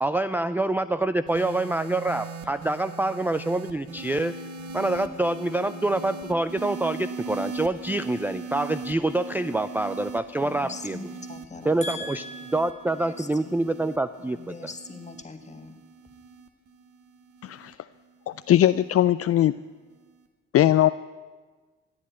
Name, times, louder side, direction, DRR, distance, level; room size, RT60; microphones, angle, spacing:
voice 1, 0.0-4.3 4.7-11.0 11.6-12.2 12.5-14.4, right 2 dB, 5° right, 12 dB, 0.4 m, -26 dB
sound 1, 1.3-17.7 18.6-19.0, right 4 dB, 75° right, 1.6 m, -40 dB
voice 2, 10.4-13.7 14.3-15.8, left 2 dB, 25° left, 6 dB, 1.8 m, -40 dB
voice 3, 17.4-17.7 18.5-19.5 20.5-20.9, left 12 dB, 50° left, 14 dB, 0.4 m, -19 dB
15.5 x 9.9 x 9.6 m, 1.4 s
cardioid pair, 90°, 30 cm